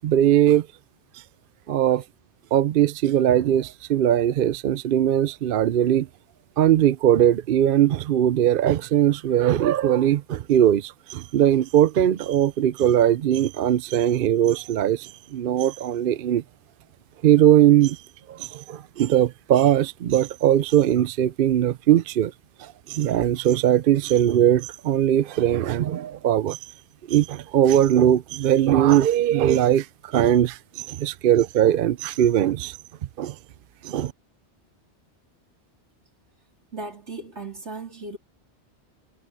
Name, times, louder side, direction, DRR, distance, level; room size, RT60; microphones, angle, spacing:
voice 1, 0.0-0.7 1.7-2.0 2.5-6.1 6.6-16.4 17.2-18.0 18.3-22.3 22.6-26.6 27.1-32.8 33.2-33.4 33.8-34.1, right 11 dB, 60° right, 0.7 m, -20 dB
voice 2, 36.7-38.2, right 3 dB, 90° right, 3.9 m, -36 dB
omnidirectional pair, 1.1 m